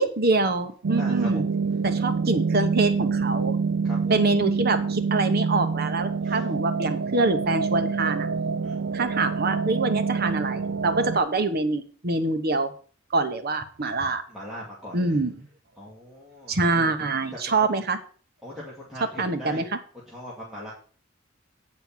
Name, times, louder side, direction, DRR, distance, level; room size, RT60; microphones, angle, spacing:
voice 1, 0.0-1.4 1.8-3.6 4.1-8.3 8.9-12.7 13.1-14.2 14.9-15.5 16.5-18.0 19.2-19.8, right 3 dB, 50° right, 8 dB, 1.0 m, -25 dB
sound 1, 0.8-11.2, right 5 dB, 70° right, 0.5 m, -26 dB
voice 2, 1.0-1.4 3.8-4.2 6.2-6.4 8.6-8.8 14.3-15.2 15.8-16.9 18.4-19.7 20.1-20.7, equal, ahead, -7 dB, 2.3 m, -40 dB
9.5 x 4.5 x 7.4 m, 0.42 s
head